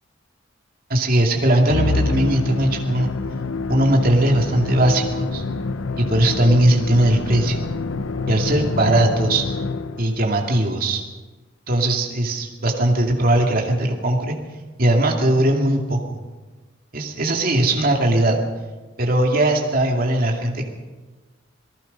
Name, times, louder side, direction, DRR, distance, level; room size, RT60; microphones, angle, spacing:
voice 1, 0.9-3.1 3.7-5.4 6.0-7.6 8.3-9.4 10.0-11.0 11.7-14.4 14.8-16.2 16.9-18.4 19.0-20.7, right 1 dB, 45° right, 1 dB, 2.4 m, -19 dB
Musical instrument, 1.7-10.2, left 3 dB, 85° left, 0.8 m, -26 dB
27.5 x 19.0 x 5.4 m, 1.3 s
head